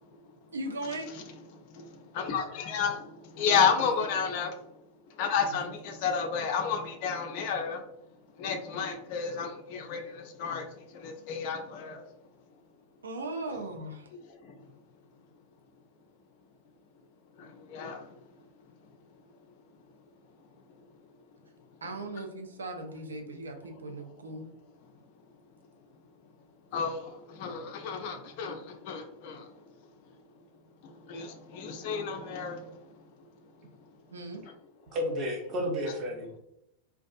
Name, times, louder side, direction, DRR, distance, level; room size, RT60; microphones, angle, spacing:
voice 1, 0.5-1.1 5.5-5.6 13.0-14.1 21.8-24.5 34.1-34.4, right 2 dB, 70° right, 0.4 m, -38 dB
voice 2, 1.5-4.7 5.1-7.8 8.4-12.0 14.4-14.7 17.4-18.1 23.9-24.0 26.7-29.5 30.8-33.0, left 6 dB, 45° left, 0.3 m, -32 dB
voice 3, 34.9-36.4, equal, 35° right, 0.6 m, -32 dB
2.4 x 2.3 x 2.3 m
figure-of-eight pair, 90°, 0 cm